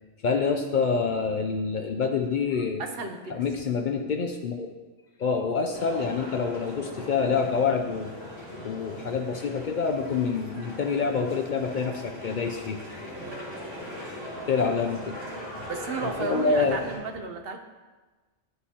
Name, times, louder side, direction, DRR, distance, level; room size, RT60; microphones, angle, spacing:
voice 1, 0.2-2.8 3.3-4.7 5.2-8.1 8.6-12.8 14.5-15.2 16.0-16.8, left 5 dB, 65° left, 4 dB, 0.5 m, -27 dB
voice 2, 2.8-3.4 13.1-13.4 15.6-17.6, right 4 dB, 60° right, 5 dB, 0.8 m, -33 dB
sound 1, 5.7-17.0, equal, 90° right, 2.6 m, -40 dB
11.5 x 4.4 x 2.8 m, 1.3 s
omnidirectional pair, 1.3 m